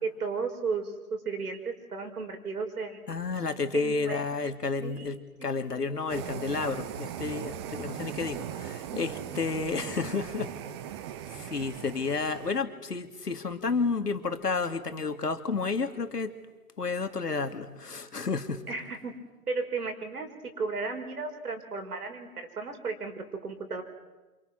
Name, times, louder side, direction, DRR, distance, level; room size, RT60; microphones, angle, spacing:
voice 1, 0.0-3.2 3.7-4.3 4.8-5.1 5.4-5.7 9.0-9.4 9.9-10.2 18.7-19.1 19.5-23.8, right 4 dB, 70° right, 5 dB, 5.5 m, -35 dB
voice 2, 3.1-10.5 11.3-16.4 16.8-18.6, left 4 dB, 80° left, 7 dB, 2.9 m, -31 dB
sound 1, 6.1-12.6, right 10 dB, 15° right, 0.8 m, -39 dB
29.5 x 27.0 x 6.2 m, 1.2 s
figure-of-eight pair, 130°, 47 cm